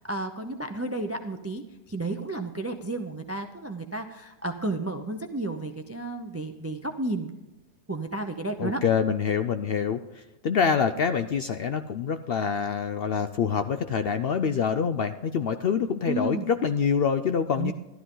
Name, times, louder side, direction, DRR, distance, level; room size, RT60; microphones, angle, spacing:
voice 1, 0.0-7.3 7.9-8.8 16.1-16.5 17.5-17.7, right 2 dB, 25° right, 7 dB, 0.3 m, -32 dB
voice 2, 8.6-17.7, left 6 dB, 65° left, 9 dB, 0.6 m, -26 dB
12.5 x 12.5 x 3.8 m, 1.0 s
omnidirectional pair, 1.5 m